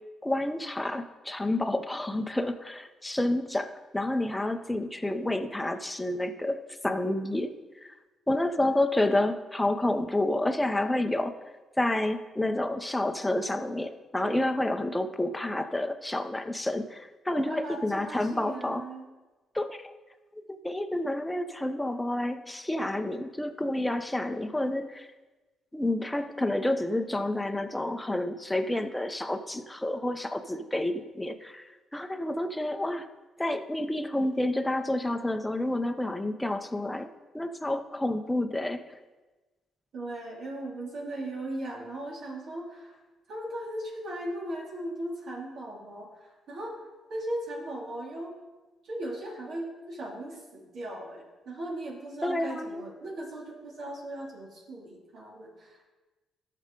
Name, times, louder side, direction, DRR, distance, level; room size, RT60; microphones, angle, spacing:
voice 1, 0.2-7.5 7.8-7.9 8.3-11.3 11.8-18.8 19.5-19.9 20.6-25.1 25.7-31.6 31.9-33.1 33.4-37.1 37.3-38.9 52.2-52.8, left 1 dB, 10° left, 7 dB, 0.6 m, -29 dB
voice 2, 17.3-19.1 39.9-43.0 43.3-46.8 47.1-48.3 48.8-55.9, right 1 dB, 65° right, -3 dB, 2.5 m, -38 dB
12.5 x 6.6 x 3.8 m, 1.2 s
cardioid pair, 90°, 0 cm